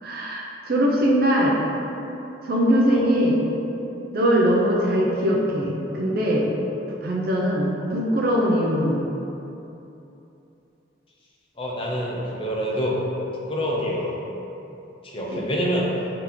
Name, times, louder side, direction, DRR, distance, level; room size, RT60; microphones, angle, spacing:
voice 1, 0.0-1.6 2.4-3.4 4.1-6.5 7.0-9.0 15.3-15.4, equal, 50° right, -3 dB, 0.5 m, -21 dB
voice 2, 11.6-13.0 13.5-14.2 15.0-15.9, equal, 30° left, -3 dB, 0.5 m, -27 dB
3.7 x 2.9 x 3.6 m, 3.0 s
head